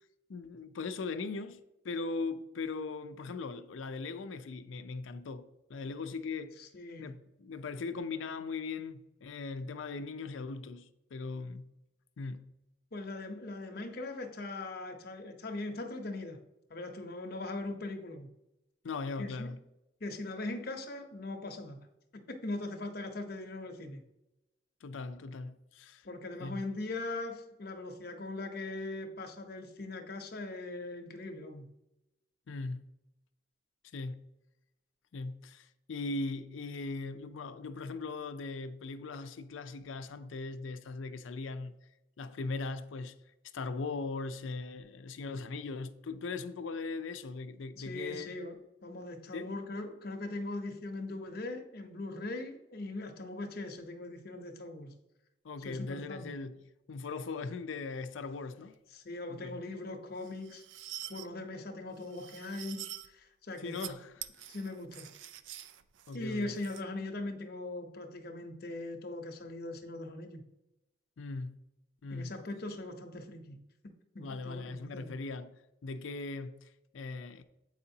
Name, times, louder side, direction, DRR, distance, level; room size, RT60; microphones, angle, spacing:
voice 1, 0.3-6.6 7.0-11.7 12.2-12.4 18.8-19.6 24.8-26.1 26.4-26.6 32.5-32.8 33.9-34.2 35.1-41.7 42.2-43.1 43.5-48.3 49.3-49.5 55.4-56.6 56.9-58.7 59.3-59.6 63.6-64.1 66.1-66.6 71.2-71.6 72.0-72.4 74.2-77.4, left 3 dB, 85° left, 0.5 m, -39 dB
voice 2, 6.6-7.1 12.9-16.4 16.7-18.3 19.2-19.5 20.0-21.8 22.3-24.0 26.0-31.7 47.8-54.9 55.6-56.3 58.9-60.6 61.1-64.0 64.5-65.1 66.1-70.4 72.1-73.6 74.1-75.2, left 2 dB, 50° left, 0.8 m, -40 dB
sound 1, 60.2-61.3 62.0-63.1 63.6-63.9 64.2-66.8, right 12 dB, 75° right, 0.4 m, -46 dB
7.8 x 4.8 x 2.7 m
head